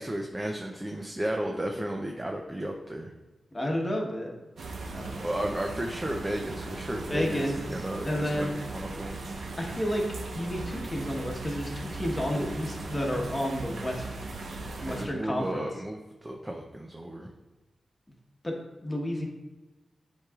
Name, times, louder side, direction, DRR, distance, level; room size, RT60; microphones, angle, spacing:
voice 1, 0.0-3.1 5.2-9.2 14.8-17.3, right 1 dB, 15° right, 1 dB, 0.5 m, -34 dB
voice 2, 3.5-4.4 4.9-5.4 7.1-8.6 9.6-10.0 10.3-14.0 14.8-15.7 18.4-18.5 18.8-19.3, equal, 15° left, -1 dB, 1.2 m, -31 dB
sound 1, 4.6-15.1, right 3 dB, 75° right, 0.9 m, -38 dB
10.5 x 4.6 x 2.4 m, 1.1 s
wide cardioid pair, 155°, 0 cm